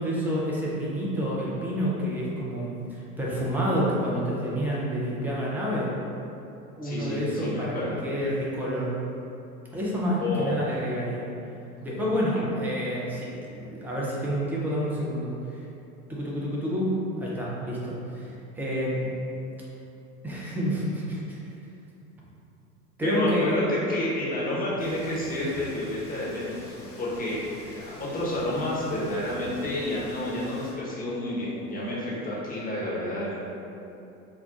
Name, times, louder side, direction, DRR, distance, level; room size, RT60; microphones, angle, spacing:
voice 1, 0.0-5.9 6.8-7.8 8.0-8.9 9.7-11.3 11.8-15.6 16.1-19.1 20.2-21.4 23.0-23.6, equal, 5° right, -6 dB, 0.3 m, -29 dB
voice 2, 6.8-8.1 10.2-10.7 12.3-12.4 23.0-33.4, left 1 dB, 20° left, -7 dB, 1.0 m, -30 dB
sound 1, 24.8-30.7, left 1 dB, 60° left, 1.3 m, -46 dB
3.8 x 2.2 x 3.7 m, 2.8 s
hypercardioid pair, 85°, 45 cm